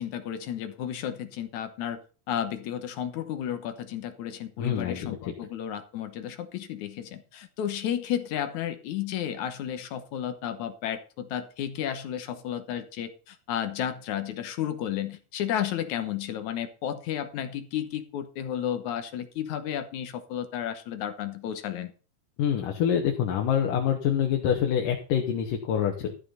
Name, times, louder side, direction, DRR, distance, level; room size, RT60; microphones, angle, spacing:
voice 1, 0.0-2.0 2.3-21.9, left 10 dB, 70° left, 9 dB, 2.4 m, -32 dB
voice 2, 4.6-5.3 22.4-26.1, left 9 dB, 90° left, 2 dB, 3.0 m, -26 dB
13.0 x 6.7 x 5.6 m, 0.37 s
omnidirectional pair, 3.6 m